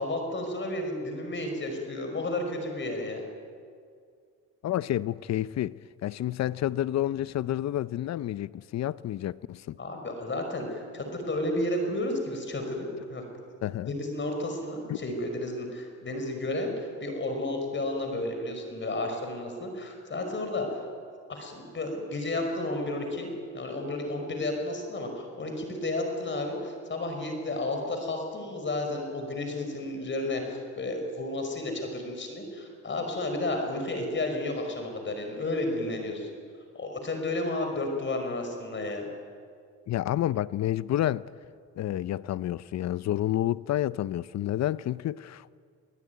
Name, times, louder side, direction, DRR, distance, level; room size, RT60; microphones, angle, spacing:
voice 1, 0.0-3.2 9.8-13.2 13.9-20.8 21.3-36.3 36.7-39.1, left 2 dB, 40° left, 5.4 m, -32 dB
voice 2, 4.6-9.8 13.6-13.9 14.9-15.0 39.9-41.3 41.8-45.6, left 13 dB, 60° left, 0.6 m, -29 dB
22.5 x 19.5 x 9.5 m
cardioid pair, 90°, 30 cm